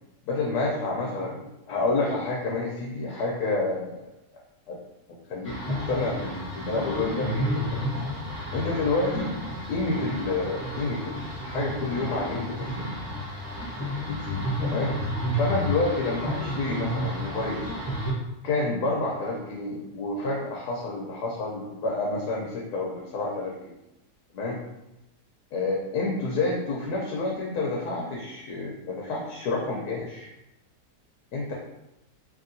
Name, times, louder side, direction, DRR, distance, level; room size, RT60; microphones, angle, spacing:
voice 1, 0.2-4.1 4.7-4.8 5.3-7.8 8.5-9.4 9.7-12.8 13.8-15.0 15.3-17.7 18.4-23.7 24.3-24.6 25.5-30.3 31.3-31.5, left 3 dB, 80° left, -2 dB, 1.1 m, -29 dB
sound 1, 5.4-18.1, equal, 20° right, 0.3 m, -31 dB
3.0 x 2.8 x 2.6 m, 0.91 s
omnidirectional pair, 1.8 m